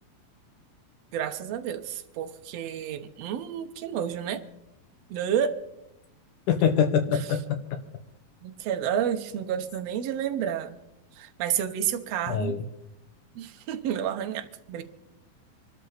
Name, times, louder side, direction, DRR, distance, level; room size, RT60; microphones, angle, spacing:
voice 1, 1.1-4.4 5.1-5.6 7.1-7.2 8.4-10.8 11.2-12.5 13.3-14.8, right 9 dB, 65° right, 7 dB, 1.7 m, -30 dB
voice 2, 6.5-7.6 12.3-12.6, left 7 dB, 70° left, 8 dB, 2.3 m, -24 dB
25.5 x 13.0 x 4.1 m, 0.86 s
omnidirectional pair, 4.2 m